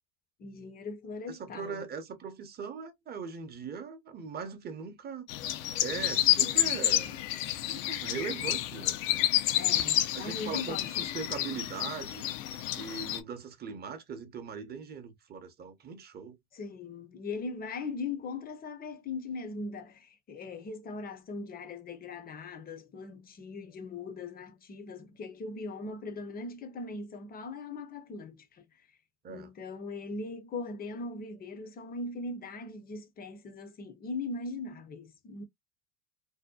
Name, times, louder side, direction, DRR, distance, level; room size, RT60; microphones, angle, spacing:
voice 1, 0.4-1.9 9.6-11.1 16.5-28.6 29.3-35.4, left 3 dB, 25° left, 0.6 m, -40 dB
voice 2, 1.3-5.3 5.8-7.3 7.7-9.0 10.1-12.4 12.7-16.4 29.2-29.5, right 6 dB, 25° right, 0.7 m, -40 dB
sound 1, 5.3-13.2, left 13 dB, 70° left, 0.5 m, -29 dB
2.7 x 2.1 x 2.2 m
hypercardioid pair, 100°, 40 cm